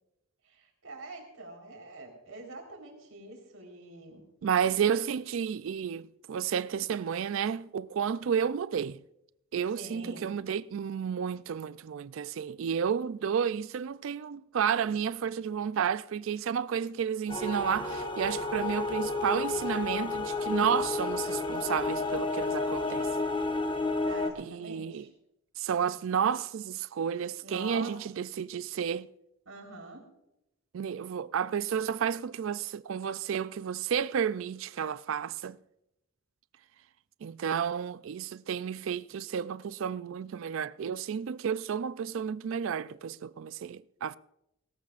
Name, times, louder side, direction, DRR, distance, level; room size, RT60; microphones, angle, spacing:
voice 1, 0.4-4.2 9.8-10.3 24.0-25.1 27.4-27.9 29.5-30.0, right 2 dB, 85° right, 4.1 m, -45 dB
voice 2, 4.4-9.0 9.5-23.1 24.4-25.1 25.6-29.1 30.7-35.6 37.2-44.2, right 7 dB, 65° right, 0.4 m, -31 dB
sound 1, 17.3-24.3, left 3 dB, 25° left, 0.9 m, -31 dB
19.0 x 17.5 x 2.5 m
head